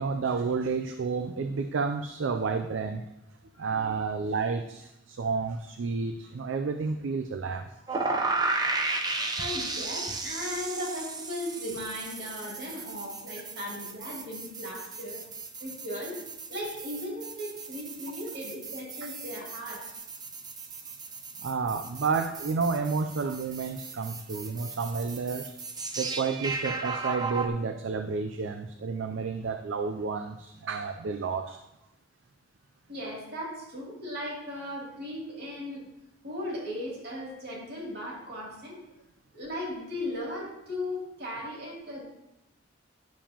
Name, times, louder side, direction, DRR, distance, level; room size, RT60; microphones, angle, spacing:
voice 1, 0.0-3.0 3.6-8.1 8.6-8.7 9.0-9.3 21.4-25.5 26.0-31.6, right 4 dB, 85° right, 7 dB, 0.4 m, -31 dB
sound 1, 7.9-27.5, right 3 dB, 20° right, 0.6 m, -35 dB
voice 2, 9.4-15.2 15.6-16.2 16.5-19.8 32.9-35.8 36.2-38.8 39.3-42.0, left 1 dB, 60° right, -3 dB, 2.7 m, -37 dB
10.5 x 7.2 x 2.9 m, 0.87 s
head